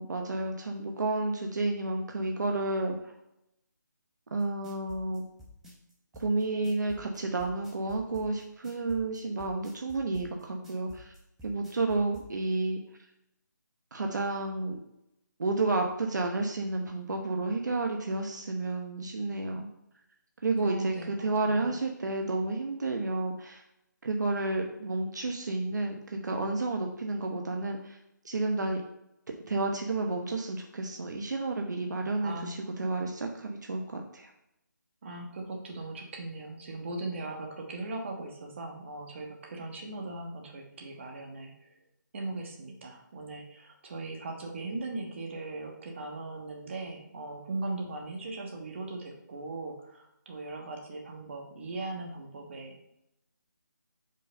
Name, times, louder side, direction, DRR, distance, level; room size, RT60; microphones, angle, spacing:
voice 1, 0.0-3.0 4.3-5.2 6.2-11.1 11.4-12.8 13.9-14.8 15.4-19.7 20.4-23.6 24.0-28.0 28.2-28.8 29.5-34.3, right 2 dB, 60° right, 3 dB, 0.9 m, -31 dB
sound 1, 4.4-12.3, left 2 dB, 5° right, 1.0 m, -51 dB
voice 2, 20.6-21.7 32.2-32.6 35.0-41.8 42.1-52.8, right 2 dB, 35° right, 1 dB, 1.2 m, -39 dB
5.3 x 4.0 x 5.4 m, 0.83 s
figure-of-eight pair, 165°, 11 cm